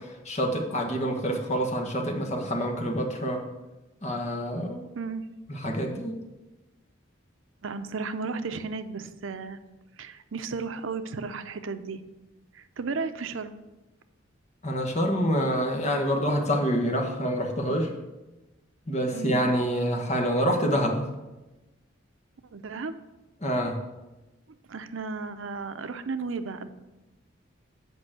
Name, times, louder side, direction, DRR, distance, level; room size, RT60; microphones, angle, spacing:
voice 1, 0.0-3.4 4.0-4.8 5.5-6.2 14.6-17.9 18.9-21.0 23.4-23.8, equal, 35° left, 2 dB, 1.4 m, -27 dB
voice 2, 7.6-9.6 10.0-12.0 12.5-13.5 19.1-19.4 22.5-22.9 24.7-26.7, right 4 dB, 80° right, 11 dB, 0.6 m, -34 dB
9.0 x 5.3 x 6.3 m, 1.1 s
head